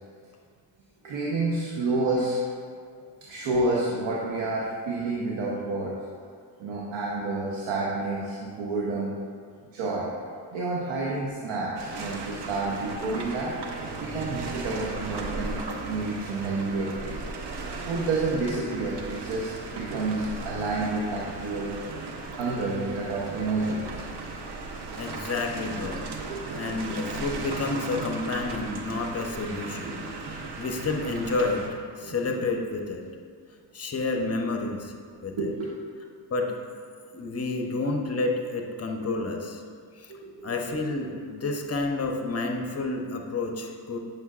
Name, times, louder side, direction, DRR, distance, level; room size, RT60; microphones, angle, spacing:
voice 1, 1.0-2.4 3.3-6.0 6.6-9.1 9.7-10.1 10.5-13.5 14.0-17.1 17.9-21.7 22.3-24.0 26.3-26.4 29.8-30.0 32.0-32.1 35.4-35.7 40.1-40.5, right 3 dB, 80° right, -4 dB, 1.0 m, -29 dB
sound 1, 11.8-31.7, right 3 dB, 60° right, 0.9 m, -36 dB
voice 2, 24.7-26.0 26.6-30.0 30.2-31.7 32.0-33.0 33.7-34.9 35.2-35.5 36.3-36.6 37.1-39.6 39.9-40.1 40.4-44.0, left 3 dB, 35° left, 2 dB, 0.9 m, -30 dB
9.0 x 6.1 x 2.5 m, 2.1 s
cardioid pair, 80°, 45 cm